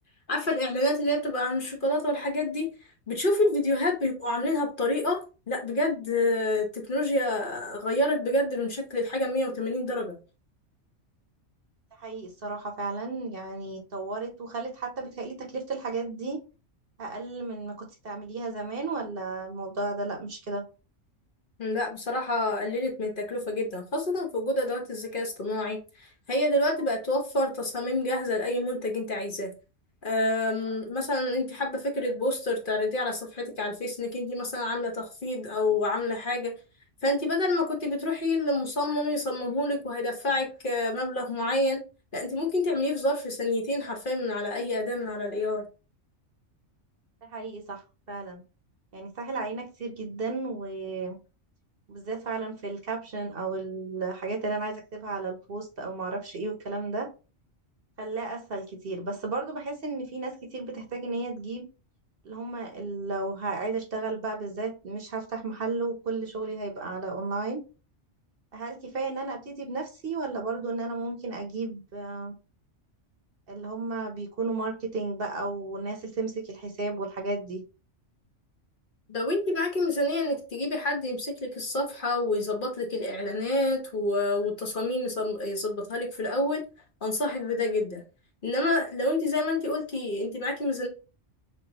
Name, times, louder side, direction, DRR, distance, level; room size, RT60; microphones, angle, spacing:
voice 1, 0.3-2.7 3.1-10.1 21.6-29.5 30.0-36.5 37.0-41.8 42.1-45.6 79.1-86.7 87.0-88.0 88.4-90.9, left 1 dB, 45° left, 1.1 m, -28 dB
voice 2, 12.0-16.4 17.0-20.6 47.2-47.8 48.1-48.4 48.9-51.2 51.9-57.1 58.0-61.6 62.2-67.6 68.5-72.3 73.5-77.6, right 3 dB, 55° right, 1.1 m, -33 dB
6.2 x 2.6 x 2.9 m
omnidirectional pair, 1.2 m